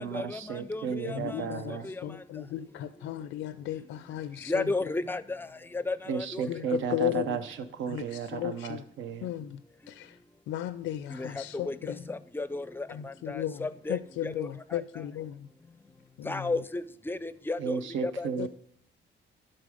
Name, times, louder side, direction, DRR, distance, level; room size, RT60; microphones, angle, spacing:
voice 1, 0.0-1.9 6.1-7.4 7.7-9.3 17.6-18.5, right 7 dB, 75° right, 10 dB, 0.8 m, -34 dB
voice 2, 1.1-4.7 6.5-7.4 7.9-8.8 9.2-9.6 9.9-10.2 10.5-12.0 12.9-15.5 16.2-16.6 18.4-18.5, left 12 dB, 80° left, 12 dB, 0.4 m, -35 dB
voice 3, 4.5-5.2 5.9-6.0 11.7-11.8 12.3-12.6 13.6-14.0 14.2-14.3 16.3-16.8 17.1-17.8 18.0-18.1, left 3 dB, 10° left, 15 dB, 0.4 m, -30 dB
12.0 x 3.9 x 5.0 m, 0.69 s
cardioid pair, 90°, 20 cm